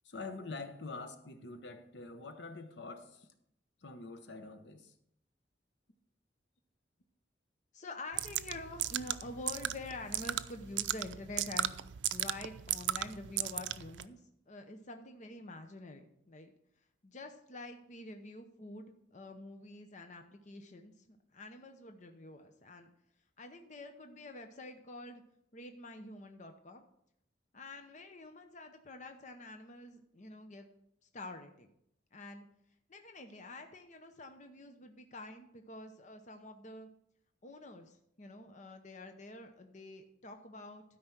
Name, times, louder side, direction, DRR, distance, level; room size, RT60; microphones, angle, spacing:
voice 1, 0.0-3.3 3.8-4.9, left 3 dB, 75° left, 8 dB, 0.9 m, -45 dB
voice 2, 7.7-11.7 12.1-14.2 14.5-16.5 17.0-22.9 23.4-25.2 25.5-26.8 27.5-30.7 31.1-31.7 32.1-32.5 32.9-36.9 37.4-40.8, left 2 dB, 40° left, 6 dB, 0.8 m, -47 dB
sound 1, 8.1-14.0, right 12 dB, 85° right, 0.4 m, -36 dB
12.5 x 5.1 x 5.9 m, 0.74 s
head